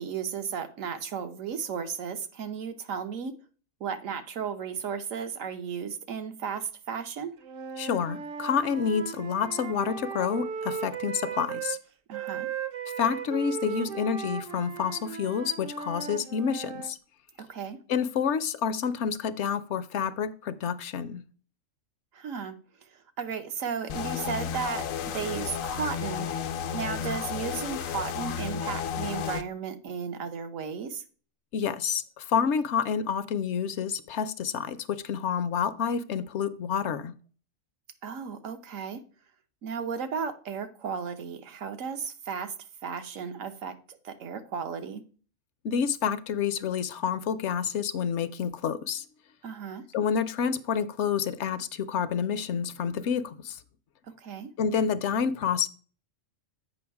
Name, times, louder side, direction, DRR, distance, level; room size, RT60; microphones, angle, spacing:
voice 1, 0.0-3.3 3.8-7.3 12.1-12.5 17.4-17.8 22.1-22.5 22.8-26.3 26.7-31.0 38.0-39.0 39.6-42.5 42.8-45.0 49.4-49.8 54.2-54.5, right 6 dB, 80° right, 1.2 m, -34 dB
Wind instrument woodwind instrument, 7.4-11.8 12.1-16.9, right 7 dB, 55° right, 0.7 m, -36 dB
voice 2, 7.8-11.8 13.0-17.0 17.9-21.2 31.5-37.2 45.6-49.0 49.9-53.6 54.6-55.7, left 7 dB, 70° left, 0.8 m, -28 dB
sound 1, 23.9-29.4, left 7 dB, 90° left, 1.0 m, -32 dB
7.8 x 5.5 x 4.6 m
omnidirectional pair, 1.4 m